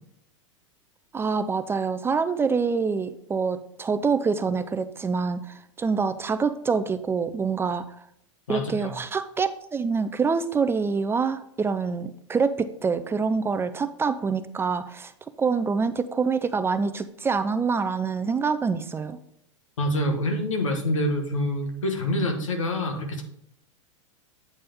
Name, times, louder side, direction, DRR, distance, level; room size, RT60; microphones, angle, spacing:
voice 1, 1.1-7.8 8.5-15.1 15.4-19.2, right 5 dB, 15° right, 11 dB, 0.4 m, -26 dB
voice 2, 8.5-8.9 19.8-23.2, left 1 dB, 85° left, 4 dB, 1.4 m, -26 dB
8.4 x 3.4 x 5.2 m, 0.72 s
hypercardioid pair, 105°, 16 cm